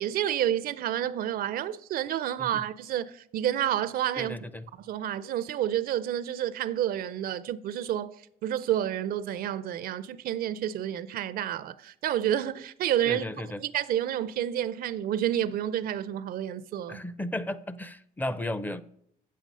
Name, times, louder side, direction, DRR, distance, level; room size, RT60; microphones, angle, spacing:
voice 1, 0.0-4.4 4.8-13.3 13.6-17.0, right 11 dB, 60° right, 0.5 m, -29 dB
voice 2, 4.2-4.6 13.1-13.6 16.9-18.8, left 1 dB, 10° left, 0.5 m, -34 dB
7.9 x 7.5 x 5.4 m
cardioid pair, 110°, 17 cm